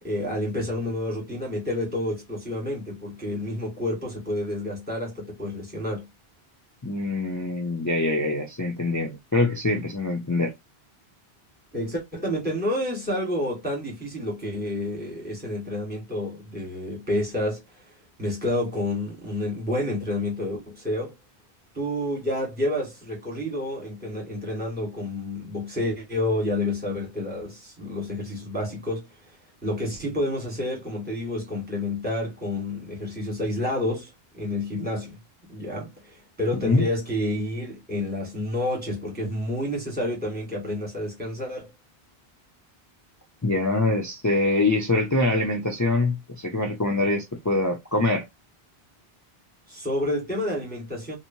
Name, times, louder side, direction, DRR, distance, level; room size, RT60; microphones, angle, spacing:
voice 1, 0.0-6.1 11.7-21.1 21.7-29.1 29.6-35.2 35.5-41.7 49.7-51.2, left 1 dB, 10° right, 1.3 m, -29 dB
voice 2, 6.8-10.5 36.6-36.8 43.4-48.3, left 2 dB, 30° left, 0.3 m, -24 dB
2.9 x 2.0 x 2.6 m
omnidirectional pair, 1.1 m